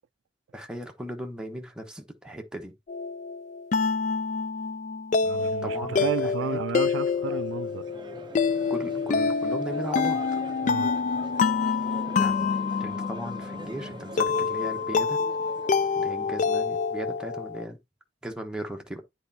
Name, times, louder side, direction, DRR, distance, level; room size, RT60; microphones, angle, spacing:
voice 1, 0.5-2.7 5.6-6.6 8.7-10.4 12.2-15.2 15.9-17.8 18.2-19.0, right 1 dB, 5° right, 1.0 m, -37 dB
sound 1, 2.9-17.6, left 5 dB, 40° left, 0.3 m, -27 dB
voice 2, 5.2-7.8 10.6-10.9, right 7 dB, 75° right, 0.3 m, -32 dB
Crowd, 7.1-17.2, right 2 dB, 25° right, 0.6 m, -44 dB
9.7 x 4.2 x 2.7 m
head